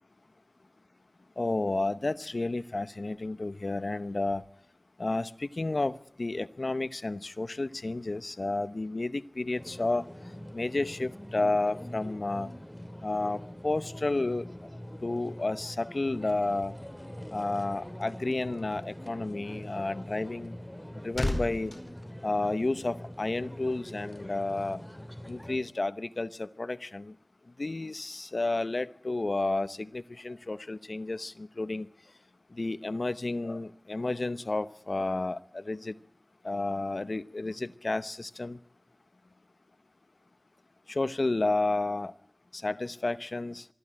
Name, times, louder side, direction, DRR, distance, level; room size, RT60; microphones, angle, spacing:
voice 1, 1.4-4.4 5.0-10.1 10.5-12.5 13.0-14.4 15.0-16.7 17.3-20.6 21.0-21.7 22.2-24.8 25.3-27.1 27.6-31.9 32.5-36.0 36.4-38.6 40.9-42.1 42.5-43.6, left 2 dB, 75° left, 0.9 m, -31 dB
sound 1, 9.5-25.6, equal, 15° left, 3.0 m, -44 dB
sound 2, 20.6-23.1 23.4-23.6, left 1 dB, 40° left, 4.7 m, -36 dB
24.0 x 14.0 x 8.9 m
wide cardioid pair, 40°, 0 cm